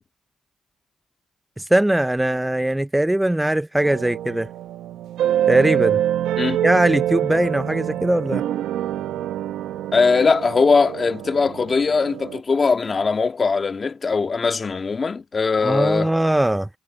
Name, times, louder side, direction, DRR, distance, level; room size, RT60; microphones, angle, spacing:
voice 1, 1.6-4.5 5.5-6.0 6.6-8.4 15.6-16.7, right 1 dB, 10° right, 0.7 m, -20 dB
sound 1, 3.8-12.4, right 11 dB, 85° right, 0.9 m, -25 dB
voice 2, 9.9-16.1, left 4 dB, 35° left, 1.8 m, -20 dB
cardioid pair, 90°, 0 cm